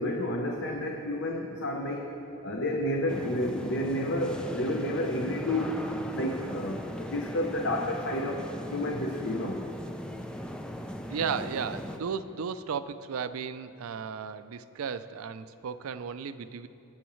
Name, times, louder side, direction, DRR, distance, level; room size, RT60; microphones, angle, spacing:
voice 1, 0.0-5.8 6.1-8.4 8.7-9.6, left 1 dB, 55° left, 1 dB, 0.8 m, -30 dB
sound 1, 3.1-12.0, equal, 5° left, 0.5 m, -38 dB
voice 2, 11.1-16.7, right 6 dB, 80° right, 12 dB, 0.4 m, -34 dB
21.0 x 7.1 x 3.1 m, 2.8 s
head